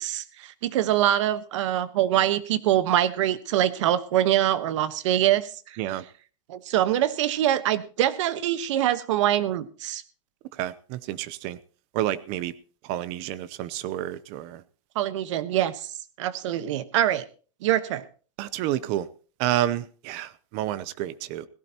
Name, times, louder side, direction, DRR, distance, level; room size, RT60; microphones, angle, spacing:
voice 1, 0.0-5.5 6.5-10.0 14.9-15.7 16.2-17.2 17.6-18.0, right 12 dB, 70° right, 13 dB, 1.2 m, -24 dB
voice 2, 10.5-11.6 11.9-12.5 12.8-14.6 18.4-19.1 19.4-21.5, right 13 dB, 40° right, 17 dB, 0.6 m, -29 dB
17.5 x 16.0 x 2.9 m, 0.38 s
supercardioid pair, 160°, 16 cm